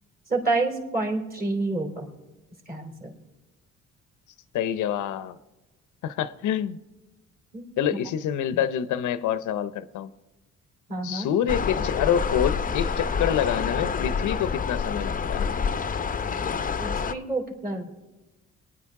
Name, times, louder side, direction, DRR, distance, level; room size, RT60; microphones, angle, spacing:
voice 1, 0.3-2.1 2.7-3.1 7.5-7.7 10.9-11.3 16.8-17.9, right 3 dB, 30° right, 1 dB, 3.4 m, -28 dB
voice 2, 4.5-5.4 6.0-6.8 7.8-10.1 11.0-15.5, left 9 dB, 75° left, 14 dB, 0.7 m, -27 dB
sound 1, 11.5-17.1, left 6 dB, 30° left, 0.6 m, -27 dB
22.5 x 10.0 x 3.6 m, 1.1 s
cardioid pair, 90°, 30 cm